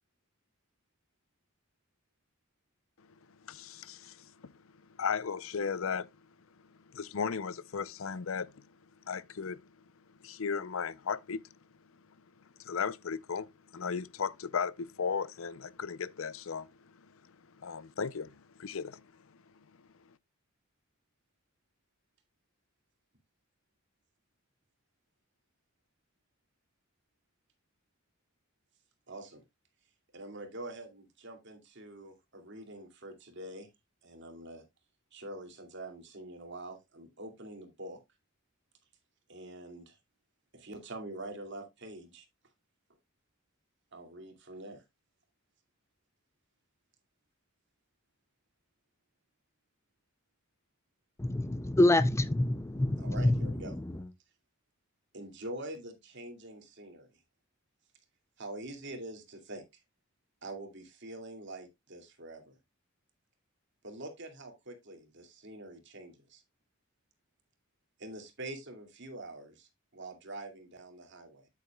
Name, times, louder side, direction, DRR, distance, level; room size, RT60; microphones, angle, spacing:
voice 1, 3.4-4.5 5.0-6.1 6.9-8.6 9.1-9.6 10.2-11.4 12.6-17.1 17.6-19.0, left 6 dB, 75° left, 0.6 m, -36 dB
voice 2, 29.1-29.4 30.1-33.7 34.0-34.6 35.1-38.0 39.3-40.0 40.5-42.3 43.9-44.8 53.0-53.7 55.1-57.1 58.4-59.6 60.4-62.6 63.8-66.4 68.0-71.5, right 1 dB, 60° right, 2.6 m, -45 dB
voice 3, 51.2-53.8, left 1 dB, 15° left, 0.5 m, -27 dB
9.6 x 8.3 x 2.3 m
head